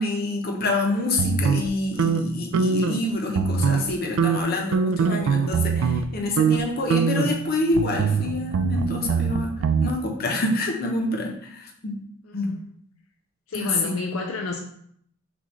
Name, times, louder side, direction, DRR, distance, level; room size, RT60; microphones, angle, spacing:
voice 1, 0.0-12.0 12.3-12.6 13.5-13.9, left 2 dB, 45° left, 1 dB, 0.8 m, -27 dB
sound 1, 1.2-3.0 3.3-3.9 4.2-6.1 6.4-6.6 6.9-9.9, right 5 dB, 70° right, 0.3 m, -23 dB
voice 2, 12.2-12.6 13.5-14.6, left 3 dB, 75° left, 2 dB, 0.5 m, -31 dB
6.2 x 2.4 x 3.1 m, 0.66 s
head